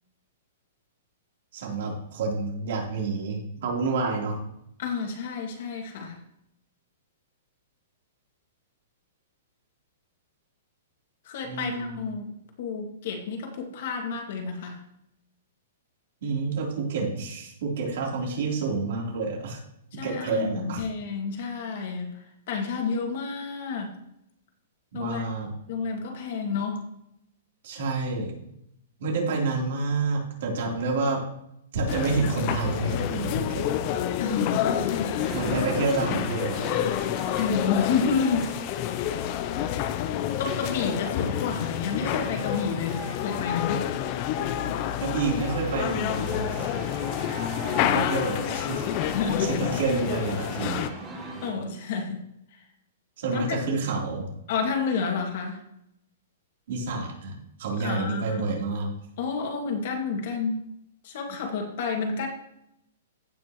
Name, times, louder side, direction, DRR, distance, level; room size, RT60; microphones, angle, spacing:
voice 1, 1.5-4.4 11.4-12.1 16.2-19.6 20.0-20.8 24.9-25.5 27.6-28.3 29.0-31.3 31.7-33.7 35.3-36.6 44.5-46.7 47.8-50.9 53.2-54.3 56.7-58.9, right 3 dB, 60° right, -2 dB, 3.5 m, -29 dB
voice 2, 4.8-6.2 11.3-14.8 19.9-24.0 24.9-26.8 34.2-35.3 37.4-38.5 40.4-43.8 47.7-48.1 49.1-49.7 51.4-52.2 52.5-52.6 53.3-53.7 54.5-55.6 57.8-58.5 59.2-60.7 61.0-62.3, left 5 dB, 50° left, 3 dB, 2.1 m, -30 dB
sound 1, 31.9-50.9, left 11 dB, 30° left, 0.5 m, -29 dB
sound 2, 35.2-51.5, right 3 dB, 10° right, 2.1 m, -42 dB
16.0 x 6.1 x 3.1 m, 0.78 s
hypercardioid pair, 165°, 0 cm